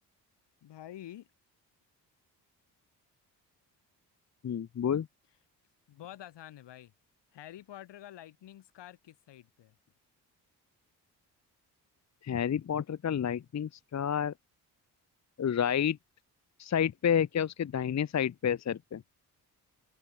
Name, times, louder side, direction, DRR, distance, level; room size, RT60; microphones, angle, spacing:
voice 1, 0.6-1.3 5.9-6.9 7.3-9.7, left 12 dB, 60° left, 2.6 m, -48 dB
voice 2, 4.4-5.1 12.2-14.3 15.4-16.0 16.6-19.0, left 8 dB, 35° left, 1.0 m, -29 dB
figure-of-eight pair, 40°, 48 cm